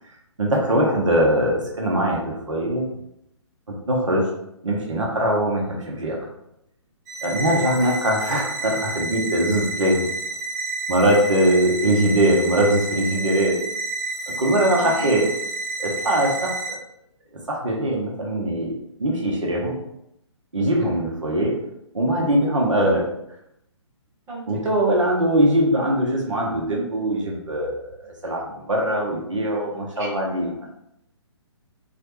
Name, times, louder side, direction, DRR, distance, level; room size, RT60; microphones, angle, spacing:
voice 1, 0.4-2.9 3.7-4.3 4.6-6.2 7.2-10.1 10.9-13.6 14.4-15.2 15.8-16.8 17.5-19.8 20.5-21.6 21.9-23.1 24.5-30.7, right 1 dB, 80° right, -2 dB, 1.0 m, -21 dB
sound 1, 7.1-16.7, right 3 dB, 35° right, 0.7 m, -30 dB
voice 2, 14.8-15.1 20.8-21.1 24.3-24.4 30.0-30.1, right 1 dB, 15° right, -9 dB, 1.4 m, -33 dB
3.1 x 2.5 x 3.0 m, 0.79 s
figure-of-eight pair, 140°, 16 cm